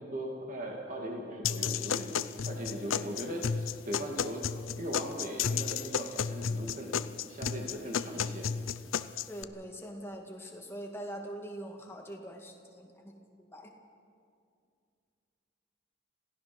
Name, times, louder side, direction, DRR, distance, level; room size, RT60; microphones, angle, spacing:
voice 1, 0.0-2.2 2.4-4.4 4.7-6.9 7.3-8.5, right 1 dB, 40° right, -1 dB, 2.3 m, -39 dB
sound 1, 1.4-9.4, left 7 dB, 85° left, 0.6 m, -33 dB
voice 2, 9.3-13.7, right 1 dB, 10° left, 1 dB, 2.1 m, -43 dB
27.0 x 16.0 x 6.1 m, 2.3 s
head